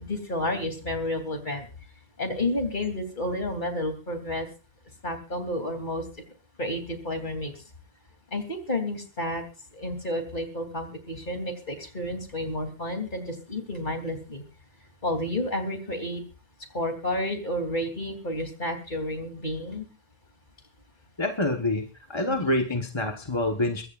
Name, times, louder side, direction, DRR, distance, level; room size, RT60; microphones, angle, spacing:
voice 1, 0.0-1.7 2.2-4.5 5.0-6.0 6.6-7.6 8.3-9.4 9.7-14.4 15.0-16.2 16.7-19.9 22.3-22.5, left 1 dB, 50° left, 6 dB, 3.3 m, -31 dB
voice 2, 21.2-23.9, left 2 dB, 25° left, 4 dB, 1.3 m, -27 dB
22.5 x 16.0 x 2.5 m, 0.32 s
omnidirectional pair, 1.0 m